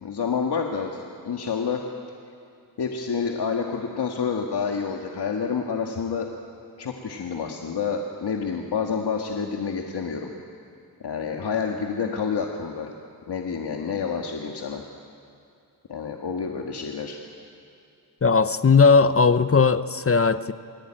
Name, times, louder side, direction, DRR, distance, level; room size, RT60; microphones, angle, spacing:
voice 1, 0.0-1.8 2.8-6.3 6.8-10.3 11.0-12.9 13.3-14.8 15.9-17.2, left 6 dB, 80° left, 1.8 m, -28 dB
voice 2, 18.2-20.5, left 5 dB, 35° left, 0.8 m, -18 dB
29.5 x 21.5 x 9.0 m
wide cardioid pair, 90°, 39 cm